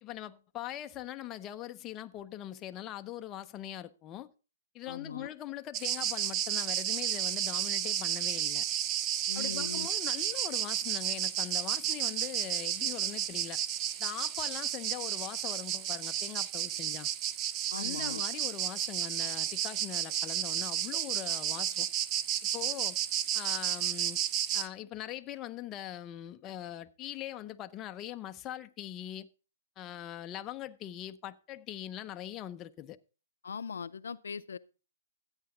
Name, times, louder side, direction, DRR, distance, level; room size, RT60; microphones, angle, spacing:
voice 1, 0.0-4.3 4.7-8.6 9.3-13.6 14.0-17.1 17.8-21.9 22.5-23.0 23.3-24.2 24.5-29.3 29.8-33.0, left 12 dB, 25° left, 0.6 m, -42 dB
voice 2, 4.9-5.3 9.3-9.9 17.7-18.2 33.4-34.6, left 6 dB, 80° left, 0.5 m, -40 dB
sound 1, 5.7-24.7, right 10 dB, 30° right, 0.6 m, -32 dB
13.0 x 8.9 x 3.9 m
hypercardioid pair, 135°, 0 cm